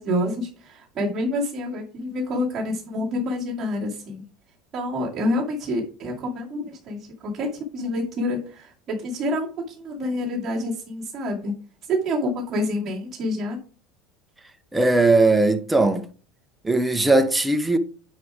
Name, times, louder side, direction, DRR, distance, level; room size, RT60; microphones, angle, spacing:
voice 1, 0.0-4.3 4.7-11.5 11.9-13.6, left 1 dB, 20° right, 2.3 m, -27 dB
voice 2, 14.7-16.1 16.6-17.8, right 2 dB, 5° right, 0.6 m, -19 dB
9.6 x 4.8 x 4.8 m
cardioid pair, 180°, 0 cm